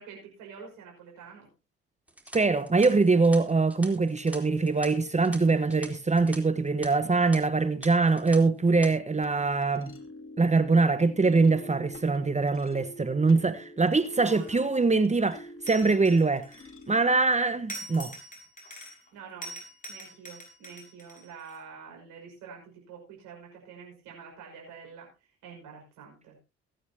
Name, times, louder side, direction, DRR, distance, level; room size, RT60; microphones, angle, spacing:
voice 1, 0.0-1.5 14.2-14.7 18.8-19.6 19.9-25.1 25.4-26.4, right 6 dB, 75° right, 5.7 m, -47 dB
sound 1, 2.1-6.4 6.7-6.9 7.3-7.4 7.8-8.4 8.7-8.9, right 1 dB, 5° right, 3.6 m, -44 dB
voice 2, 2.3-9.9 10.4-16.5 16.9-18.1, right 3 dB, 20° right, 1.1 m, -23 dB
sound 2, 8.7-17.2, equal, 40° left, 2.7 m, -46 dB
sound 3, 14.1-14.7 15.7-17.0 17.7-19.1 19.4-21.6, right 1 dB, 25° left, 6.1 m, -43 dB
23.0 x 9.2 x 2.8 m
hypercardioid pair, 50°, 32 cm